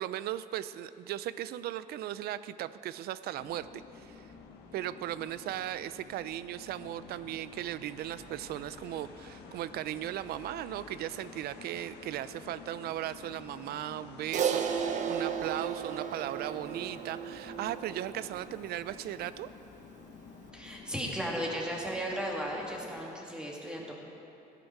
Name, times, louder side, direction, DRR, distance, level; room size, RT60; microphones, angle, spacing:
voice 1, 0.0-4.3 4.7-19.5, right 12 dB, 70° right, 15 dB, 0.5 m, -37 dB
sound 1, 3.3-23.1, left 4 dB, 80° left, 1.5 m, -51 dB
Crash cymbal, 14.3-18.9, right 7 dB, 45° right, 0.8 m, -34 dB
voice 2, 20.5-23.9, equal, 5° right, -3 dB, 2.5 m, -35 dB
16.0 x 11.0 x 4.7 m, 2.8 s
cardioid pair, 110°, 17 cm